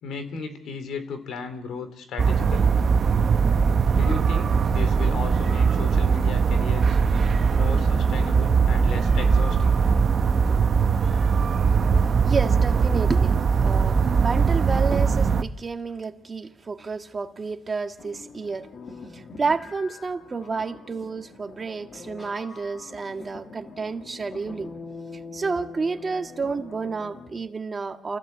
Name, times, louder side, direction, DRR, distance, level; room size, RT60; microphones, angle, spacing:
voice 1, 0.0-2.8 3.9-7.0 7.6-9.8, left 5 dB, 75° left, 9 dB, 3.3 m, -35 dB
sound 1, 2.2-15.4, right 5 dB, 50° right, 1.1 m, -20 dB
voice 2, 12.0-18.7 19.1-24.7 25.3-28.2, right 4 dB, 35° right, 6 dB, 1.7 m, -30 dB
sound 2, 18.0-27.5, left 4 dB, 50° left, 2.5 m, -43 dB
28.5 x 15.5 x 8.1 m, 0.81 s
cardioid pair, 90°, 0 cm